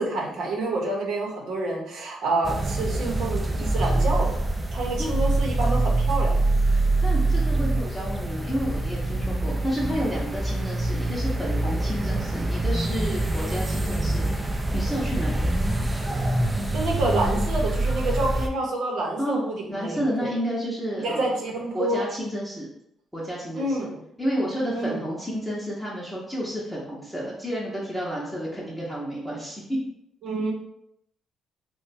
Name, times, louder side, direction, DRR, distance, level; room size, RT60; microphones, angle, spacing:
voice 1, 0.0-4.4 4.7-6.3 16.7-20.3 21.0-22.1 23.5-24.0 24.7-25.0 30.2-30.5, right 2 dB, 75° right, -1 dB, 0.9 m, -28 dB
sound 1, 2.4-18.5, right 2 dB, 20° right, 0.4 m, -25 dB
voice 2, 6.7-15.5 19.2-21.4 21.7-22.7 23.1-23.8 24.2-29.6, equal, ahead, -7 dB, 0.8 m, -31 dB
2.7 x 2.2 x 4.1 m, 0.77 s
cardioid pair, 90°, 0 cm